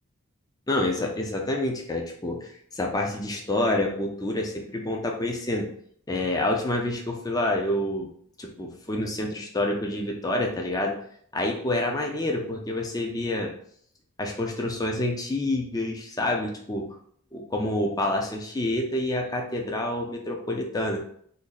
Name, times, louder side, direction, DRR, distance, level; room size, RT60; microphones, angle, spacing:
voice 1, 0.7-5.7 6.1-8.1 8.4-11.0 11.3-13.5 14.2-16.9 17.3-21.0, left 1 dB, 15° left, 1 dB, 0.4 m, -28 dB
2.7 x 2.6 x 3.9 m, 0.64 s
head